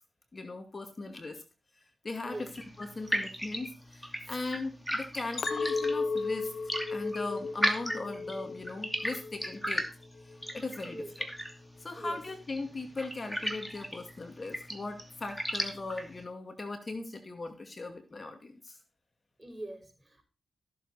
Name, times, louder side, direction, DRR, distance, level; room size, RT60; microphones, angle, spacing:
voice 1, 0.3-1.4 2.0-2.5 2.8-6.5 6.9-9.9 10.5-11.3 11.8-18.8, left 3 dB, 45° left, 5 dB, 2.4 m, -39 dB
sound 1, 2.3-16.2, equal, 5° left, 2.5 m, -37 dB
Chink clink, 5.4-9.7 10.2-10.6, left 4 dB, 70° left, 0.8 m, -35 dB
voice 2, 10.8-11.1 11.9-12.2 19.4-20.2, right 1 dB, 25° right, 4 dB, 5.4 m, -42 dB
14.0 x 7.4 x 4.2 m, 0.33 s
supercardioid pair, 45°, 0 cm